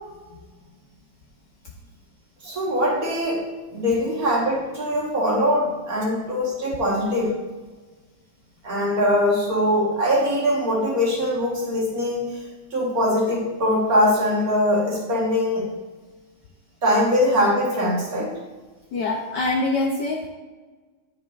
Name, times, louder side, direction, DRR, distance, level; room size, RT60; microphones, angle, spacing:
voice 1, 2.4-3.4 3.7-7.4 8.6-12.5 12.7-15.7 16.8-18.3, left 1 dB, 50° right, -3 dB, 1.5 m, -22 dB
voice 2, 18.9-20.3, left 2 dB, 70° left, 0 dB, 1.0 m, -24 dB
9.4 x 5.7 x 2.3 m, 1.3 s
omnidirectional pair, 2.4 m